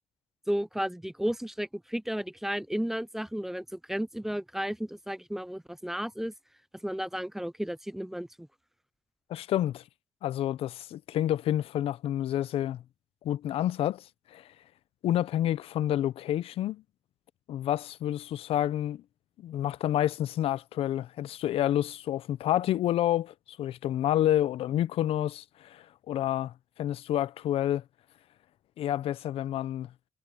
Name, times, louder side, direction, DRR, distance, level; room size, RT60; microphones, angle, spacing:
voice 1, 0.5-6.3 6.8-8.5, equal, 5° right, 0.3 m, -33 dB
voice 2, 9.3-9.8 10.2-12.8 13.2-14.0 14.3-14.4 15.0-16.8 17.5-19.0 19.4-26.5 26.8-27.8 28.8-29.9, left 12 dB, 65° left, 0.5 m, -29 dB
cardioid pair, 155°, 11 cm